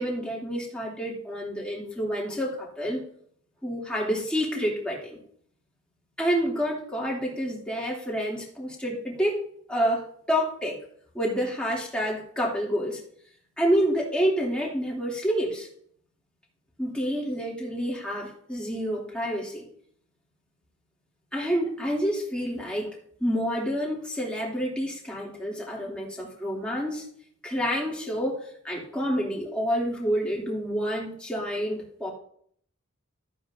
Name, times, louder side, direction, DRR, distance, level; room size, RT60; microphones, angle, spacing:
voice 1, 0.0-3.0 3.6-5.2 6.2-10.8 11.1-13.0 13.6-15.7 16.8-19.6 21.3-27.0 27.4-32.1, equal, 5° left, -4 dB, 2.8 m, -28 dB
14.0 x 9.3 x 2.7 m, 0.63 s
head